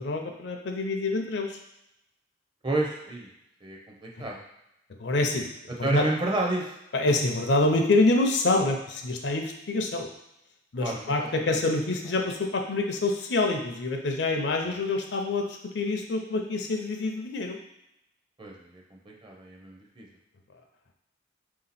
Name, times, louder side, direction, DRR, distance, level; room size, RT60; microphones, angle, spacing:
voice 1, 0.0-1.6 4.2-4.3 5.0-5.5 5.8-6.0 6.9-10.1 10.7-17.6, left 2 dB, 60° left, 3 dB, 0.5 m, -26 dB
voice 2, 2.6-3.3 3.6-4.4 5.8-6.7 10.8-11.7 12.2-12.3 14.6-14.7 18.4-20.1, right 2 dB, 25° right, -1 dB, 0.6 m, -31 dB
3.6 x 2.8 x 4.1 m, 0.84 s
head